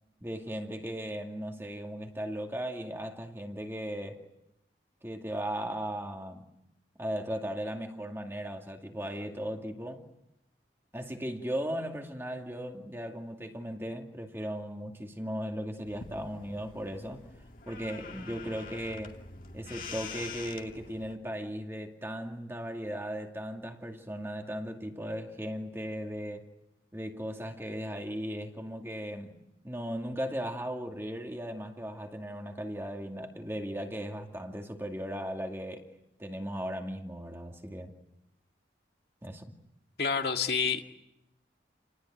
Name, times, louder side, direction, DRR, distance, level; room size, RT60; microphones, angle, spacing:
voice 1, 0.2-4.2 5.0-6.4 7.0-10.0 10.9-17.2 17.7-19.2 19.5-26.5 26.9-35.9 36.2-37.9 39.2-39.6, equal, 15° right, 2.3 m, -37 dB
sound 1, 15.8-21.2, left 4 dB, 50° left, 2.3 m, -45 dB
voice 2, 40.0-40.8, left 5 dB, 65° left, 2.0 m, -28 dB
29.5 x 20.0 x 9.2 m
head